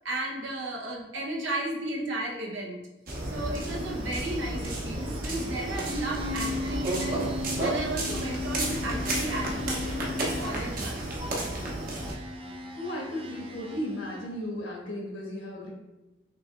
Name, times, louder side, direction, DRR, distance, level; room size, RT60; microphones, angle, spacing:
voice 1, 0.0-2.8 3.3-11.1, right 1 dB, 75° right, -1 dB, 0.9 m, -34 dB
FR.PB.footsteps, 3.1-12.1, right 1 dB, 45° right, 1.0 m, -32 dB
sound 1, 3.6-14.4, left 2 dB, 30° right, 0.4 m, -38 dB
voice 2, 12.7-15.7, left 1 dB, 75° left, -4 dB, 1.5 m, -35 dB
5.8 x 3.3 x 2.5 m, 1.0 s
head